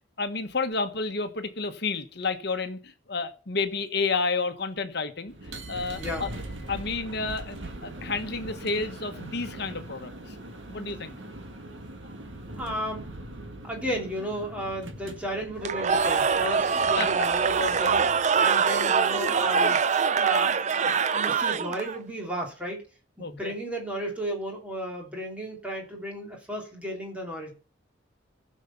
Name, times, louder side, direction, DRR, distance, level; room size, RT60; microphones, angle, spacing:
voice 1, 0.2-6.3 6.7-10.3 10.7-11.2 17.0-17.1 23.2-23.5, left 4 dB, 55° left, 8 dB, 1.3 m, -31 dB
sound 1, 5.3-19.7, right 1 dB, 75° right, 1.9 m, -42 dB
voice 2, 6.0-6.3 12.6-13.1 13.6-18.0 18.4-19.8 20.2-20.6 20.8-22.8 23.2-27.5, equal, 5° right, 0 dB, 2.9 m, -34 dB
Cheering / Crowd, 15.6-22.0, right 6 dB, 35° right, 0.5 m, -24 dB
15.5 x 6.5 x 5.7 m, 0.38 s
head